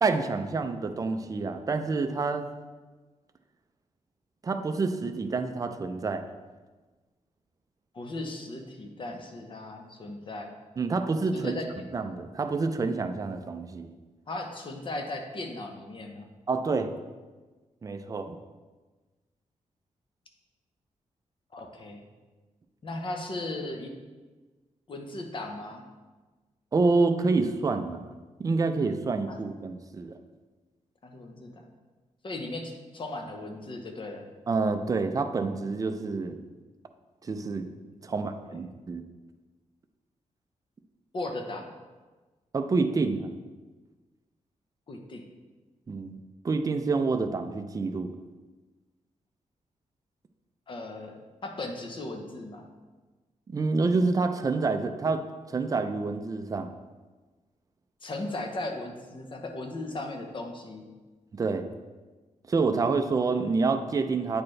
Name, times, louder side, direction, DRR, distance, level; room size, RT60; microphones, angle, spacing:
voice 1, 0.0-2.5 4.4-6.2 10.8-11.5 11.9-13.9 16.5-16.9 17.8-18.4 26.7-28.1 28.4-30.2 34.5-36.4 37.2-37.7 38.0-39.0 42.5-43.3 45.9-46.2 46.4-48.1 53.5-56.7 61.3-61.7 62.5-64.4, right 4 dB, 25° right, 7 dB, 0.4 m, -27 dB
voice 2, 7.9-10.5 11.3-11.7 14.3-16.3 21.5-22.0 22.8-23.9 24.9-25.8 29.3-29.4 31.0-31.6 32.2-34.3 38.0-38.6 41.1-41.7 44.9-45.2 50.7-51.1 51.4-52.7 58.0-60.9, left 2 dB, 40° left, 3 dB, 0.8 m, -37 dB
8.6 x 4.3 x 3.2 m, 1.3 s
wide cardioid pair, 135°, 13 cm